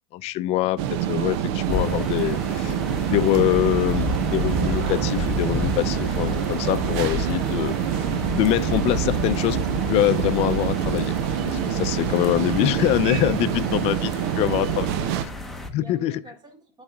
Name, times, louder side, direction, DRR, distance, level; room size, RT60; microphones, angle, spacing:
voice 1, 0.1-2.7 3.1-9.6 9.9-11.1 11.5-14.9 15.7-16.2, left 14 dB, 45° left, 0.5 m, -24 dB
sound 1, 0.8-15.3, right 10 dB, 65° right, 0.6 m, -26 dB
sound 2, 1.7-15.7, left 1 dB, ahead, 0.9 m, -30 dB
voice 2, 14.0-16.8, right 1 dB, 30° right, 2.0 m, -46 dB
12.0 x 4.1 x 2.3 m
supercardioid pair, 130°, 15 cm